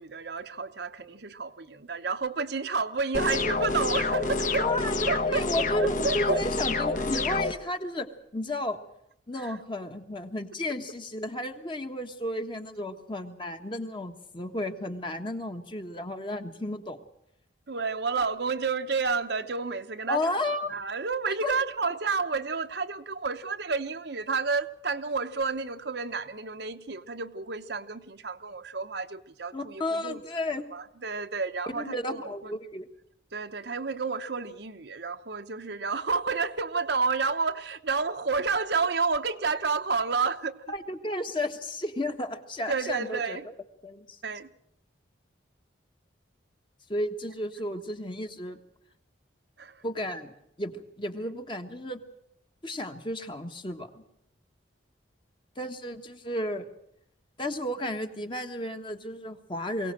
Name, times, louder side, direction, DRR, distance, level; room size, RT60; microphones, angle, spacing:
voice 1, 0.0-4.7 5.1-5.5 5.8-6.4 7.0-7.2 9.3-9.6 17.7-20.3 20.7-30.2 30.5-32.5 33.3-40.6 42.7-43.4 44.2-44.5 49.6-49.8, right 4 dB, 60° right, 0.9 m, -30 dB
sound 1, 3.1-7.5, left 3 dB, 40° left, 1.1 m, -28 dB
voice 2, 4.6-8.8 9.3-17.0 20.1-20.7 21.3-21.5 29.5-30.7 31.7-32.9 40.7-43.4 43.8-44.2 46.9-48.6 49.8-52.0 52.6-53.9 55.6-56.7 57.4-59.9, left 1 dB, 25° left, 1.4 m, -33 dB
22.5 x 17.5 x 7.6 m
head